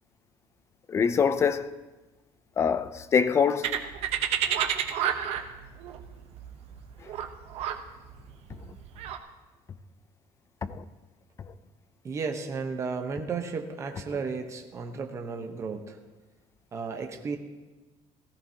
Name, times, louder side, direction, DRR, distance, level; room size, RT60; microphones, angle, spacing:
voice 1, 0.9-1.7 2.6-3.8 10.7-10.8, left 6 dB, 25° left, 0.4 m, -24 dB
sound 1, 3.6-9.2, right 9 dB, 60° right, 0.9 m, -30 dB
voice 2, 12.0-16.0 16.7-17.4, right 5 dB, 25° right, 1.0 m, -33 dB
17.5 x 15.0 x 2.8 m
cardioid pair, 170°, 12 cm